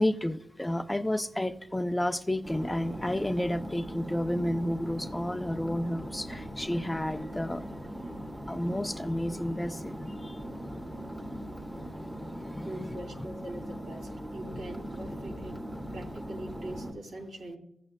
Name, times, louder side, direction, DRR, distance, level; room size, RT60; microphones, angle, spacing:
voice 1, 0.0-7.6 8.5-10.5 11.7-13.0, left 1 dB, 10° left, 0.5 m, -31 dB
sound 1, 2.4-16.9, equal, 10° right, 1.5 m, -40 dB
voice 2, 12.6-15.6 15.9-17.6, right 1 dB, 85° right, 2.9 m, -42 dB
15.0 x 8.9 x 2.2 m
wide cardioid pair, 115°, 0 cm